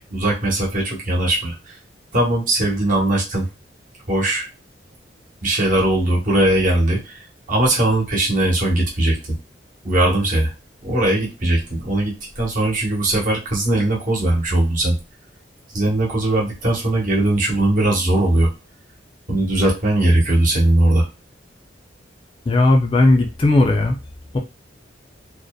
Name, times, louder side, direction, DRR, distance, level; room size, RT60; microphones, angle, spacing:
voice 1, 0.0-1.8 2.1-3.5 4.1-4.5 5.4-7.2 7.5-9.4 9.8-10.5 10.8-14.9 15.7-18.5 19.3-21.1, right 1 dB, 50° right, -2 dB, 0.9 m, -19 dB
voice 2, 22.5-24.0 24.3-24.4, left 2 dB, 30° left, 2 dB, 0.4 m, -16 dB
2.6 x 2.1 x 2.2 m, 0.27 s
head